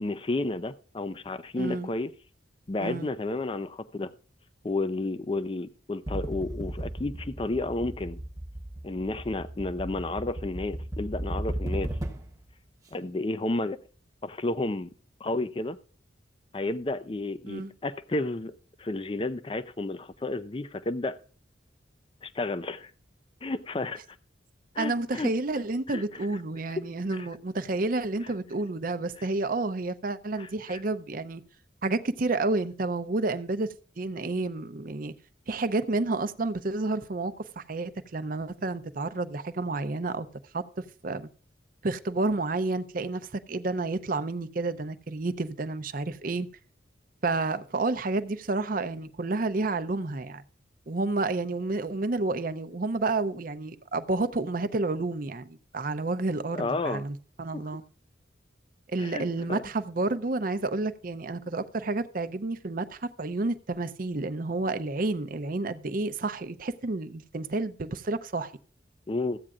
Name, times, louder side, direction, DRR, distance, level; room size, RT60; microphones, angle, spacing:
voice 1, 0.0-2.1 2.7-4.1 4.6-8.2 8.8-11.9 12.9-13.8 14.2-14.9 15.2-15.8 16.5-18.5 18.8-21.2 22.2-22.9 23.4-24.0 24.7-25.3 25.9-26.3 26.8-26.9 27.2-27.3 29.2-29.3 30.4-30.8 56.5-57.0 59.0-59.6 69.1-69.4, left 2 dB, 30° left, 0.5 m, -31 dB
voice 2, 1.6-1.9 2.8-3.1 17.5-17.7 24.8-31.4 31.8-33.7 34.0-35.1 35.5-40.3 40.5-41.3 41.8-46.5 47.2-50.4 50.9-57.8 58.9-68.5, right 2 dB, 45° right, 0.6 m, -30 dB
sound 1, 6.1-12.4, right 1 dB, 20° right, 1.0 m, -36 dB
14.5 x 8.7 x 2.5 m
head